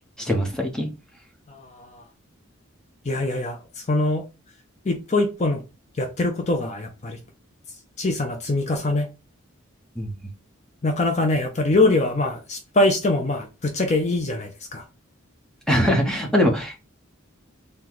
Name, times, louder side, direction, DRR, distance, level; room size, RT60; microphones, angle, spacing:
voice 1, 0.2-0.9 10.0-10.1 15.7-16.9, equal, 5° left, 0.9 m, -22 dB
voice 2, 1.5-2.0 3.0-4.2 4.8-5.6 5.9-7.2 8.0-9.1 10.8-14.8, left 2 dB, 35° left, 0.5 m, -23 dB
3.8 x 2.3 x 4.5 m
head